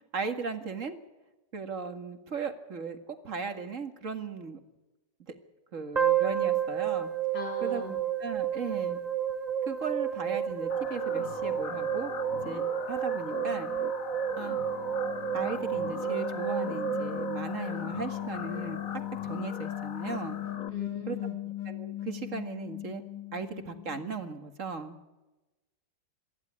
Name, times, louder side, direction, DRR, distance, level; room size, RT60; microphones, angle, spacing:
voice 1, 0.1-1.0 1.5-4.6 5.7-7.1 7.6-9.0 9.6-12.1 12.4-13.7 14.4-14.6 15.3-20.4 21.1-21.2 21.7-23.0 23.3-25.0, right 5 dB, 45° right, 8 dB, 2.2 m, -37 dB
sound 1, 6.0-18.2, right 9 dB, 30° right, 1.0 m, -31 dB
voice 2, 7.3-8.0 20.7-21.4, left 4 dB, 90° left, 2 dB, 4.2 m, -39 dB
sound 2, 10.7-20.7, left 7 dB, 55° left, 1.5 m, -41 dB
sound 3, 14.3-24.4, left 14 dB, 70° left, 3.1 m, -39 dB
27.5 x 11.0 x 9.6 m, 1.1 s
omnidirectional pair, 1.9 m